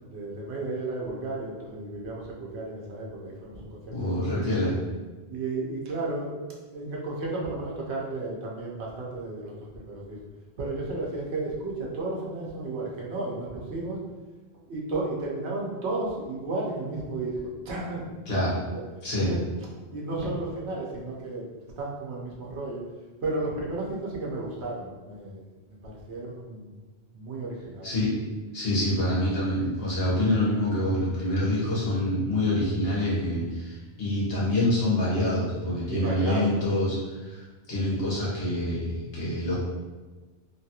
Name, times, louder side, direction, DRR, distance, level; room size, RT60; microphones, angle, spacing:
voice 1, 0.1-4.3 5.3-6.3 6.7-10.2 10.6-14.0 14.7-18.1 18.6-18.8 19.2-19.4 19.9-21.5 21.8-22.8 23.2-25.4 25.8-26.7 27.1-28.0 35.9-36.5, right 2 dB, 85° right, -3 dB, 1.0 m, -33 dB
voice 2, 3.9-4.7 18.3-18.5 19.0-19.3 27.8-28.1 28.5-39.6, left 1 dB, 65° left, -7 dB, 1.3 m, -26 dB
2.9 x 2.3 x 2.8 m, 1.2 s
omnidirectional pair, 1.1 m